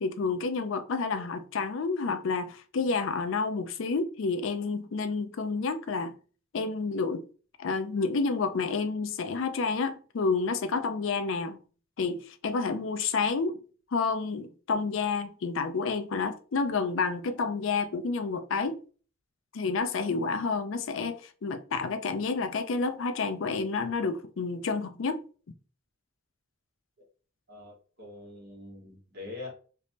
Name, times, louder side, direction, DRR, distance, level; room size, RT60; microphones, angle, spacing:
voice 1, 0.0-6.1 6.5-7.3 7.6-11.6 12.0-13.6 13.9-18.8 19.5-25.2, left 4 dB, 65° left, 0.4 m, -29 dB
voice 2, 27.5-29.5, left 2 dB, 50° right, 1.5 m, -44 dB
3.4 x 3.0 x 2.8 m
head